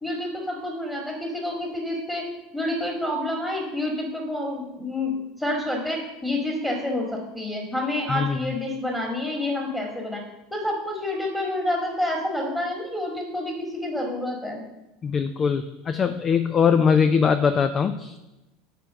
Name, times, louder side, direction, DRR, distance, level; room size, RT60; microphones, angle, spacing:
voice 1, 0.0-2.2 2.5-10.2 10.5-14.6, left 1 dB, 10° left, -1 dB, 1.9 m, -28 dB
voice 2, 15.0-18.2, left 6 dB, 35° left, 10 dB, 0.5 m, -21 dB
6.7 x 4.6 x 6.4 m, 0.98 s
hypercardioid pair, 80°, 0 cm